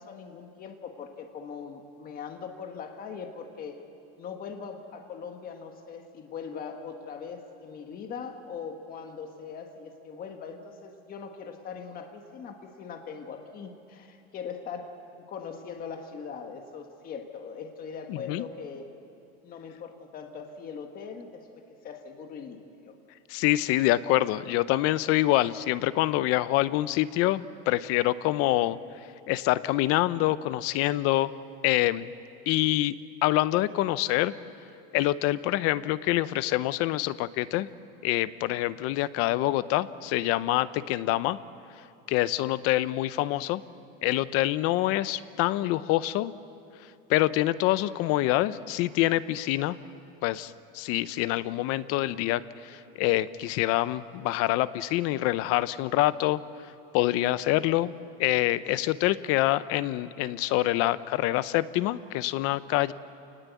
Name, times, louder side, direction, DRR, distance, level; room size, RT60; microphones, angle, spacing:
voice 1, 0.0-3.8 4.2-15.0 15.3-18.9 19.4-22.9, left 6 dB, 30° left, 5 dB, 1.6 m, -41 dB
voice 2, 18.1-18.4 23.3-28.8 29.3-31.3 31.6-32.1 32.5-33.0 33.2-34.3 34.9-37.7 38.0-41.4 42.1-43.6 44.0-46.3 47.1-49.8 50.2-56.4 56.9-57.9 58.2-62.9, left 16 dB, 50° left, 16 dB, 0.7 m, -26 dB
28.5 x 19.5 x 8.3 m, 2.6 s
cardioid pair, 165°, 29 cm